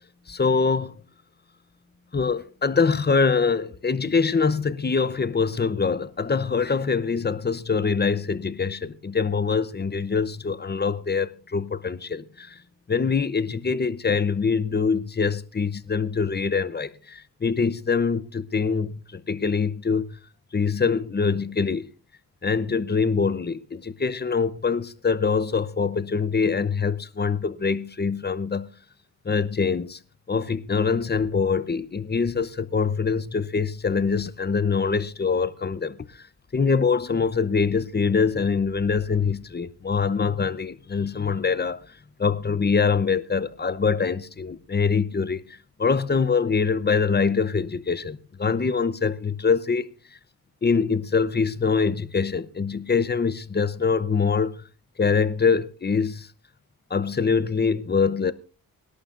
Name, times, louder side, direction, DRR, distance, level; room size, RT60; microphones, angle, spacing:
voice 1, 0.3-1.0 2.1-12.6 12.9-20.2 20.5-21.9 22.4-28.7 29.2-30.0 30.3-36.3 36.5-41.8 42.2-49.9 50.6-54.6 55.0-56.3 56.9-58.3, left 5 dB, 25° left, 0.8 m, -24 dB
25.5 x 11.5 x 2.6 m
cardioid pair, 90°, 37 cm